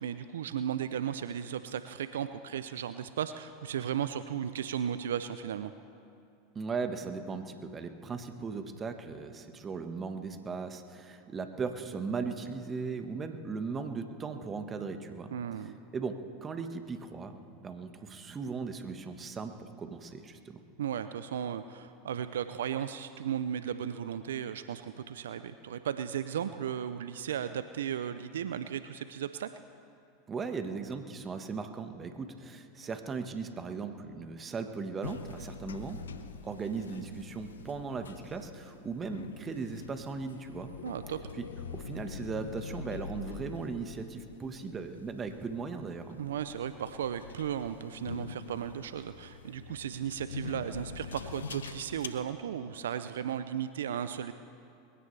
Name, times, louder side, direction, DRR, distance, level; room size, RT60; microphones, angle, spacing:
voice 1, 0.0-5.7 15.3-15.8 20.8-29.5 40.8-41.2 46.2-54.3, right 9 dB, 80° right, 12 dB, 0.5 m, -35 dB
voice 2, 6.5-15.3 15.9-20.6 30.3-36.0 36.4-40.7 41.4-41.5 41.7-46.2, right 4 dB, 25° right, 7 dB, 1.4 m, -38 dB
sound 1, 35.0-52.1, left 5 dB, 85° left, 0.7 m, -45 dB
21.5 x 16.5 x 3.4 m, 2.5 s
hypercardioid pair, 90°, 0 cm